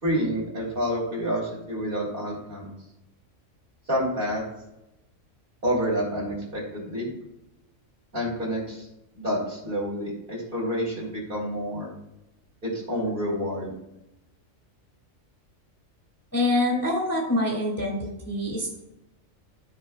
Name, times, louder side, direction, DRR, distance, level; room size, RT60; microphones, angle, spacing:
voice 1, 0.0-2.7 3.9-4.4 5.6-7.1 8.1-8.9 9.1-11.9 12.6-13.7, equal, 40° right, -5 dB, 3.2 m, -28 dB
voice 2, 16.3-18.8, left 1 dB, 10° left, -2 dB, 1.8 m, -25 dB
13.5 x 4.8 x 2.4 m, 0.93 s
omnidirectional pair, 1.4 m